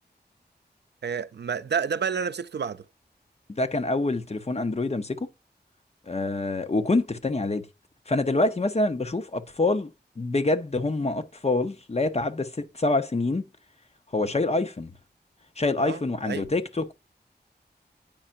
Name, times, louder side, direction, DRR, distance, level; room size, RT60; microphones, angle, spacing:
voice 1, 1.0-2.9 15.8-16.5, right 6 dB, 75° right, 0.4 m, -30 dB
voice 2, 3.5-5.3 6.1-7.7 8.1-9.9 10.2-13.4 14.1-14.9 15.6-16.9, left 2 dB, 35° left, 0.8 m, -26 dB
8.8 x 5.6 x 2.6 m
wide cardioid pair, 85°, 18 cm